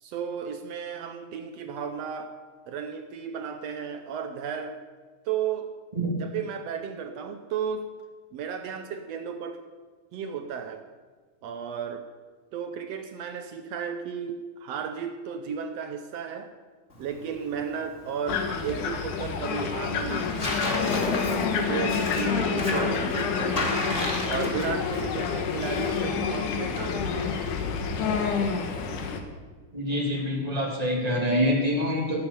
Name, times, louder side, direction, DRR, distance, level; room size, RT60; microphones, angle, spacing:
voice 1, 0.0-2.4 2.7-4.8 5.2-5.7 6.1-7.9 8.3-9.6 10.1-10.9 11.4-12.1 12.5-16.5 17.0-20.5 20.9-23.8 24.3-27.4, right 7 dB, 70° right, 8 dB, 1.6 m, -34 dB
Tearing, 16.9-29.1, left 2 dB, 25° left, 2.1 m, -36 dB
sound 1, 18.3-29.2, left 5 dB, 90° left, 2.8 m, -28 dB
voice 2, 29.7-32.2, equal, 15° right, -1 dB, 2.3 m, -26 dB
16.5 x 8.7 x 7.0 m, 1.4 s
omnidirectional pair, 3.5 m